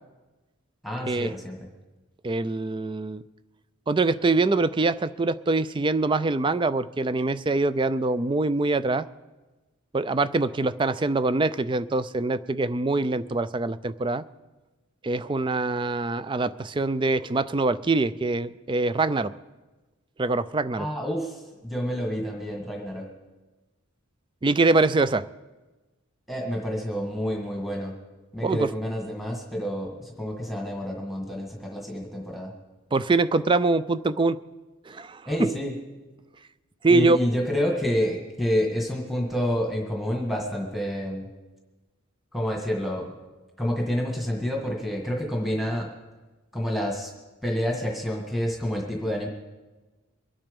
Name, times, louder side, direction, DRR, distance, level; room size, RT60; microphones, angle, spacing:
voice 1, 0.8-1.7 20.8-23.1 26.3-28.0 28.3-32.5 35.3-35.7 36.9-41.3 42.3-43.1 43.6-45.9 46.5-47.1 47.4-49.3, equal, ahead, -1 dB, 1.8 m, -28 dB
voice 2, 2.2-3.2 3.9-9.1 9.9-14.2 15.0-19.3 20.2-20.9 24.4-25.2 28.4-28.7 32.9-34.4 34.9-35.2 36.8-37.2, right 3 dB, 25° right, 15 dB, 0.4 m, -24 dB
23.5 x 8.9 x 5.3 m, 1.2 s
head